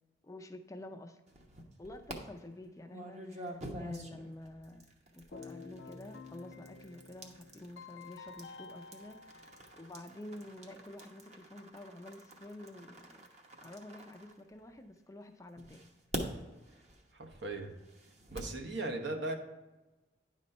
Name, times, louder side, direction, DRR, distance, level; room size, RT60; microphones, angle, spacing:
voice 1, 0.2-1.2 1.8-4.8 5.1-9.4 9.8-13.3 13.6-15.9, left 1 dB, 15° left, 5 dB, 0.5 m, -49 dB
sound 1, 1.3-2.2 2.9-14.9 15.6-18.6, right 1 dB, 40° right, 1.0 m, -47 dB
Keyboard (musical), 5.3-10.3, left 4 dB, 70° left, 0.7 m, -51 dB
voice 2, 17.1-17.7 18.3-19.3, right 2 dB, 70° right, 3 dB, 1.1 m, -38 dB
10.0 x 4.2 x 5.4 m, 1.1 s
head